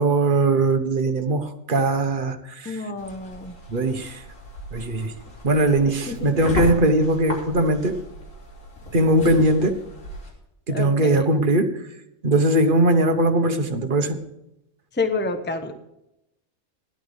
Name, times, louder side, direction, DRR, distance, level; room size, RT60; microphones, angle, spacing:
voice 1, 0.0-2.8 3.7-4.2 4.7-5.1 5.4-8.0 8.9-9.8 10.7-11.8 12.2-14.2, right 1 dB, 45° right, 6 dB, 1.4 m, -20 dB
voice 2, 2.6-3.5 6.1-6.3 10.7-11.3 14.9-15.7, left 3 dB, 10° left, 7 dB, 0.9 m, -28 dB
sound 1, 3.0-10.3, left 1 dB, 85° left, 3.8 m, -36 dB
16.5 x 11.5 x 3.5 m, 0.85 s
omnidirectional pair, 1.3 m